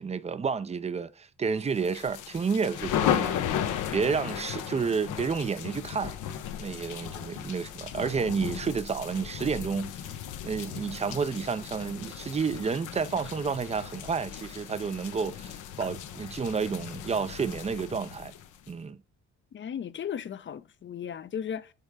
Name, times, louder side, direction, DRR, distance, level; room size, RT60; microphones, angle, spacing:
voice 1, 0.0-3.4 3.9-6.2 6.6-10.0 10.4-18.3 18.7-19.0, right 5 dB, 20° right, 0.5 m, -30 dB
sound 1, 1.8-18.7, left 9 dB, 85° left, 0.9 m, -35 dB
voice 2, 19.5-21.7, left 8 dB, 40° left, 0.6 m, -36 dB
6.6 x 3.6 x 4.8 m
cardioid pair, 90°, 30 cm